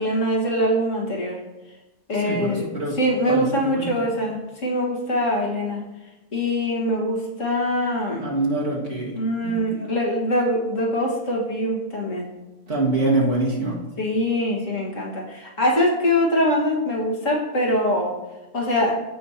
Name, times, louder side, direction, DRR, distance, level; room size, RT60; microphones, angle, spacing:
voice 1, 0.0-1.4 2.1-2.7 2.9-5.8 6.3-8.3 9.2-12.3 14.0-18.1 18.5-19.0, equal, 60° left, -3 dB, 2.1 m, -23 dB
voice 2, 2.2-2.9 3.3-3.9 8.2-9.2 9.4-9.7 12.7-13.8, right 2 dB, 55° right, -5 dB, 2.4 m, -24 dB
15.0 x 5.4 x 2.9 m, 1.1 s
omnidirectional pair, 1.5 m